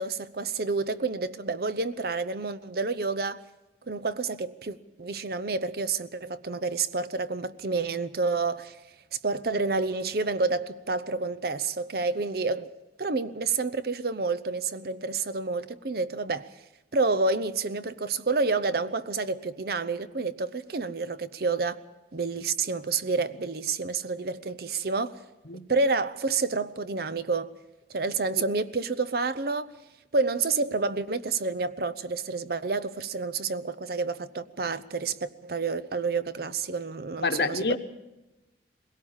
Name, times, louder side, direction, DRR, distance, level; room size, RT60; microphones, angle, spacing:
voice 1, 0.0-3.4 3.9-8.8 9.2-12.7 13.0-16.5 16.9-21.8 22.1-25.1 25.7-27.5 27.9-29.7 30.1-37.8, right 4 dB, 55° right, 0.8 m, -29 dB
voice 2, 37.2-37.8, left 3 dB, 65° left, 1.1 m, -27 dB
21.5 x 17.0 x 7.3 m
head